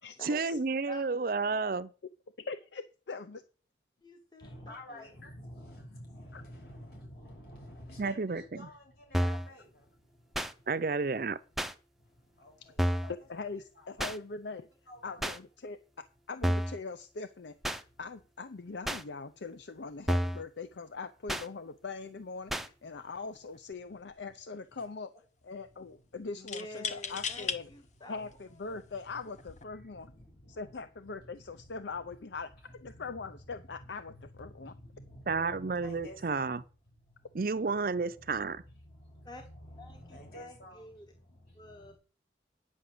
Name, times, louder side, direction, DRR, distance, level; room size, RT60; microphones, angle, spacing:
voice 1, 0.2-1.9 8.0-8.4 10.7-11.4 35.3-36.6 37.3-38.6, right 4 dB, 50° right, 0.5 m, -31 dB
voice 2, 0.9-1.8 4.0-5.1 26.4-28.2 28.6-28.8 39.2-39.4 39.8-41.1 41.5-41.9, left 1 dB, 25° left, 1.1 m, -49 dB
voice 3, 2.4-3.4 6.3-6.4 13.1-14.7 15.0-17.6 18.0-25.1 25.4-27.7 28.1-30.1 30.5-34.7, left 4 dB, 75° left, 0.6 m, -42 dB
voice 4, 4.4-9.6 13.0-13.1 14.9-15.2 35.1-36.5 39.4-40.8, equal, 55° left, 6.1 m, -48 dB
sound 1, 9.1-9.5 10.3-10.5 11.6-11.7 12.8-13.1 14.0-14.2 15.2-15.4 16.4-16.8 17.6-17.8 18.9-19.0 20.1-20.4 21.3-21.5 22.5-22.7, equal, ahead, 0.5 m, -30 dB
sound 2, 23.3-23.6 23.9-24.5 26.5-27.6 28.3-28.4 29.3-29.6, left 6 dB, 40° left, 0.7 m, -37 dB
9.7 x 5.8 x 7.7 m
head